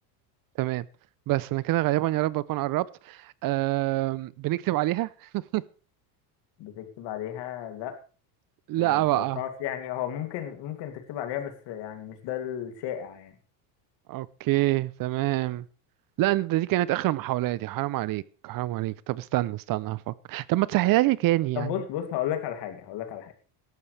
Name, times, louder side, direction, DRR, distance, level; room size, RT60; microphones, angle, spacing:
voice 1, 1.3-5.6 8.7-9.4 14.1-15.6 16.2-21.7, right 17 dB, 45° right, 0.7 m, -26 dB
voice 2, 6.6-8.0 8.8-13.4 21.5-23.3, left 11 dB, 60° left, 2.7 m, -34 dB
17.0 x 12.5 x 3.3 m
supercardioid pair, 115°, 47 cm